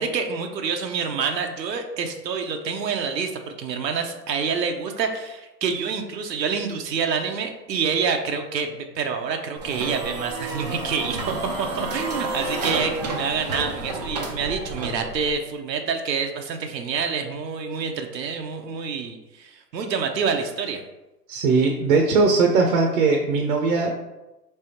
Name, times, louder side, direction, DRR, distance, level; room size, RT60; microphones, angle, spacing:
voice 1, 0.0-20.8, right 6 dB, 90° right, 4 dB, 0.8 m, -27 dB
sound 1, 9.6-15.4, right 2 dB, 30° right, 0.3 m, -30 dB
voice 2, 21.3-23.9, right 4 dB, 55° right, 2 dB, 0.7 m, -19 dB
3.4 x 3.3 x 4.3 m, 1.0 s
hypercardioid pair, 130°, 49 cm